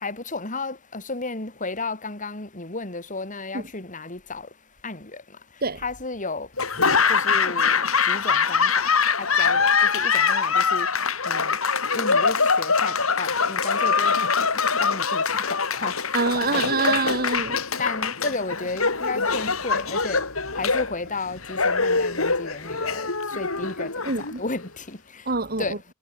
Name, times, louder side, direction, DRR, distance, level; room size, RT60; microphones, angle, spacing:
voice 1, 0.0-4.5 4.8-5.2 5.8-6.5 7.1-7.8 8.1-8.9 9.2-9.7 9.9-10.9 11.3-11.6 11.9-14.1 14.8-16.0 16.5-17.0 17.8-20.2 20.6-23.1 23.4-24.1 24.4-25.0 25.6-25.8, left 3 dB, 40° left, 3.9 m, -33 dB
Laughter / Applause, 6.6-24.7, left 5 dB, 85° left, 5.7 m, -23 dB
voice 2, 16.1-17.6 24.1-24.4 25.3-25.8, right 3 dB, 45° right, 3.8 m, -25 dB
head